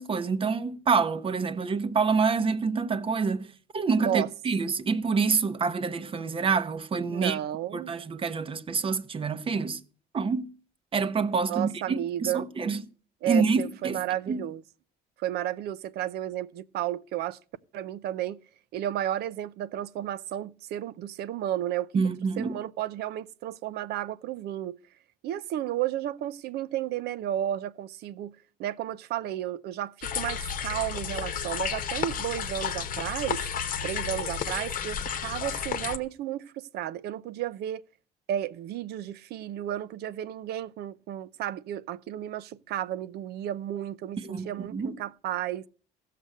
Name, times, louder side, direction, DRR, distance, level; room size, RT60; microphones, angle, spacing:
voice 1, 0.0-7.4 7.7-9.8 10.1-10.5 10.9-12.8 13.3-14.0 14.3-14.4 21.9-22.6 44.2-45.0, right 5 dB, 30° right, 0.8 m, -27 dB
voice 2, 7.1-7.9 11.5-12.5 13.2-14.6 15.2-17.4 17.7-18.4 18.7-21.9 22.4-24.8 25.2-28.3 28.6-33.4 33.8-37.8 38.3-45.7, right 12 dB, 75° right, 0.6 m, -33 dB
sound 1, 30.0-36.0, left 8 dB, 55° left, 1.0 m, -32 dB
15.0 x 6.7 x 6.5 m
cardioid pair, 110°, 17 cm